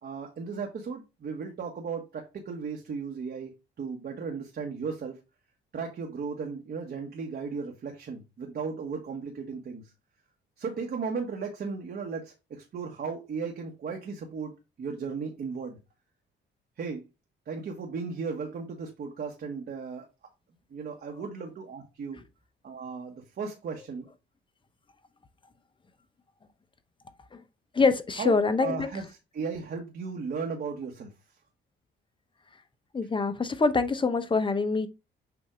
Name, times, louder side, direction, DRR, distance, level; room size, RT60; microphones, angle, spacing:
voice 1, 0.0-3.5 3.8-5.2 5.7-9.8 10.6-15.8 16.8-17.0 17.5-20.1 20.7-22.2 22.6-24.1 28.2-29.0 29.3-31.1, right 5 dB, 55° right, 1.4 m, -36 dB
voice 2, 27.7-28.9 32.9-34.9, left 4 dB, 25° left, 0.9 m, -25 dB
7.0 x 2.7 x 5.0 m
cardioid pair, 90°, 20 cm